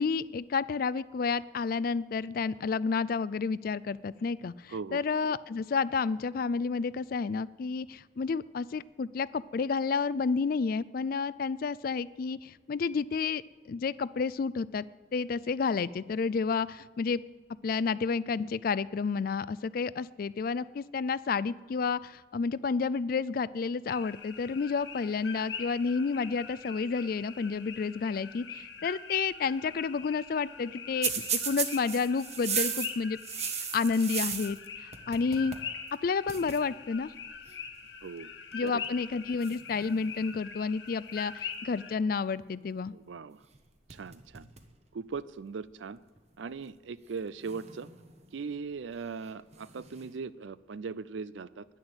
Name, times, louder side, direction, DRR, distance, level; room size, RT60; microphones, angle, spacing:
voice 1, 0.0-13.4 13.7-14.9 15.1-17.2 17.6-31.1 31.5-33.2 33.6-35.5 36.0-37.1 38.5-42.9, left 5 dB, 50° left, 19 dB, 0.3 m, -30 dB
voice 2, 4.7-5.0 38.0-38.3 38.6-38.8 42.9-43.4 43.9-44.5 44.9-46.0 46.4-47.9 48.3-51.7, right 5 dB, 75° right, 17 dB, 0.5 m, -39 dB
sound 1, 23.9-41.9, left 6 dB, 70° left, 1.2 m, -43 dB
sound 2, 31.0-34.7 34.9-35.7 35.9-36.0 36.3-36.6 37.5-37.7 38.5-38.9 39.4-40.5 43.4-43.6 43.9-44.7 45.1-45.2 46.2-46.3 47.4-48.3 49.5-50.1, right 7 dB, 35° right, 1.0 m, -35 dB
10.5 x 10.5 x 7.9 m, 1.2 s
head